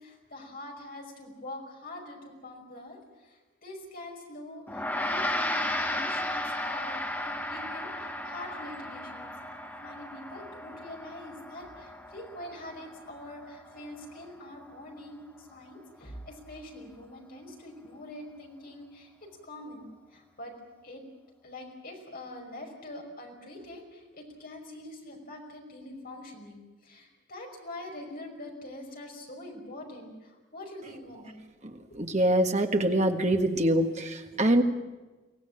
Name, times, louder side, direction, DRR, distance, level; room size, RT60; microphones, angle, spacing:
voice 1, 0.0-3.0 3.2-9.3 9.6-20.5 20.8-21.0 21.4-31.4, left 1 dB, 45° left, 1 dB, 5.4 m, -44 dB
Gong, 4.7-14.3, left 1 dB, 10° left, 1.9 m, -35 dB
voice 2, 31.6-34.6, right 1 dB, 35° right, 5 dB, 1.6 m, -25 dB
24.0 x 17.5 x 8.7 m, 1.2 s
head